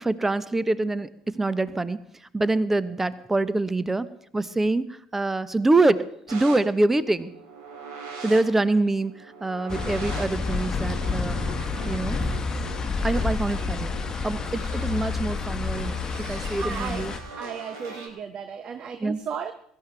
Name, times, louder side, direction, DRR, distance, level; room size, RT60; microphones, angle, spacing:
voice 1, 0.0-2.0 2.3-4.1 4.3-4.9 5.1-6.0 6.3-7.3 8.2-9.1 9.4-11.4 11.9-12.2 13.0-13.9 14.2-17.1 19.0-19.2, right 2 dB, 15° right, 16 dB, 0.9 m, -25 dB
sound 1, 6.3-18.1, right 4 dB, 65° right, 3.6 m, -41 dB
sound 2, 9.7-17.2, left 4 dB, 30° left, 1.2 m, -29 dB
voice 2, 16.5-17.0 17.4-19.5, right 7 dB, 40° right, 9 dB, 0.9 m, -34 dB
22.5 x 13.5 x 3.4 m, 0.68 s
figure-of-eight pair, 60°, 2 cm